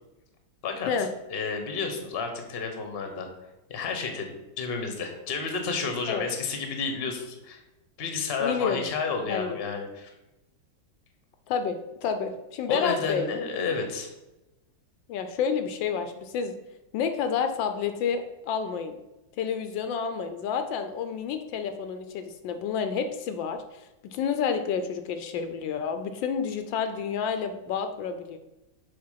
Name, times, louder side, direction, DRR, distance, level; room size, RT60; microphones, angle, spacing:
voice 1, 1.3-3.3 3.7-7.6 8.0-10.1 12.7-14.1, left 5 dB, 40° left, 5 dB, 1.0 m, -31 dB
voice 2, 8.4-8.8 9.3-9.6 11.5-13.3 15.1-16.5 16.9-19.0 19.4-28.4, left 6 dB, 80° left, 8 dB, 1.2 m, -29 dB
6.6 x 3.7 x 5.6 m, 0.98 s
omnidirectional pair, 2.1 m